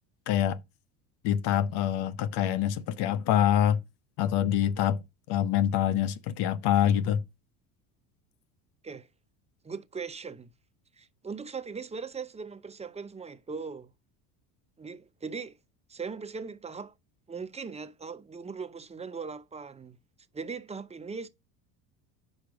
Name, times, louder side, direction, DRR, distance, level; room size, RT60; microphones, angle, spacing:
voice 1, 0.3-0.6 1.2-3.8 4.2-5.0 5.3-7.2, left 10 dB, 65° left, 0.9 m, -25 dB
voice 2, 9.6-10.5 11.0-13.9 14.8-15.6 15.9-16.9 17.3-20.0 20.3-21.3, right 5 dB, 15° right, 0.7 m, -39 dB
5.8 x 5.2 x 5.0 m
supercardioid pair, 100°, 44 cm